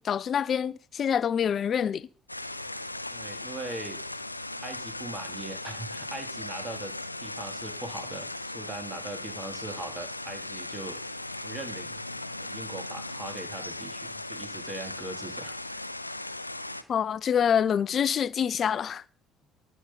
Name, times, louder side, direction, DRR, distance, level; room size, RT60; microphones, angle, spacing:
voice 1, 0.0-2.1 16.9-19.0, left 8 dB, 40° left, 0.5 m, -26 dB
sound 1, 2.3-16.8, left 2 dB, 90° left, 0.5 m, -38 dB
voice 2, 3.1-4.0 4.6-6.9 7.2-11.0 11.4-12.0 12.4-15.9, right 2 dB, 20° right, 2.9 m, -40 dB
19.0 x 6.5 x 4.0 m
figure-of-eight pair, 55°, 0 cm